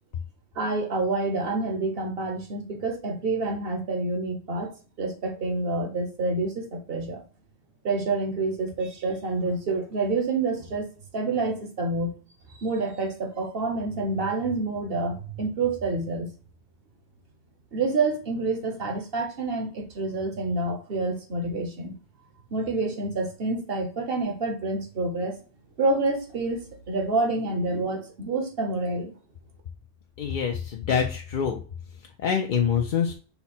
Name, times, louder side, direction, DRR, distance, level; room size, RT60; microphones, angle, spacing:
voice 1, 0.6-7.2 7.8-12.1 12.6-16.3 17.7-21.9 22.5-25.4 25.8-29.1, right 3 dB, 55° right, 4 dB, 1.1 m, -28 dB
voice 2, 30.2-31.6 32.2-33.1, left 7 dB, 60° left, 2 dB, 0.6 m, -25 dB
5.6 x 2.1 x 4.2 m, 0.39 s
omnidirectional pair, 1.2 m